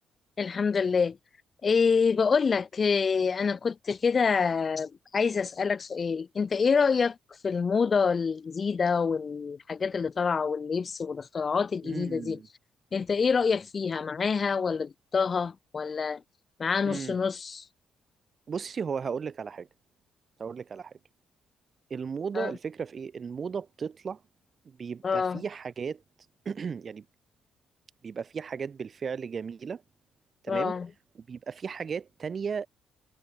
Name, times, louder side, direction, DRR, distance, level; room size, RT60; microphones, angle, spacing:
voice 1, 0.4-1.2 1.6-7.2 7.4-12.4 12.9-16.2 16.6-17.6 22.3-22.5 25.0-25.4 30.5-30.9, left 5 dB, 40° left, 0.6 m, -26 dB
voice 2, 11.8-12.5 16.8-17.2 18.5-19.7 20.4-21.0 21.9-24.2 24.7-26.0 26.5-27.1 28.0-29.8 30.4-30.8 31.1-32.7, right 6 dB, 45° right, 0.6 m, -35 dB
cardioid pair, 90°, 0 cm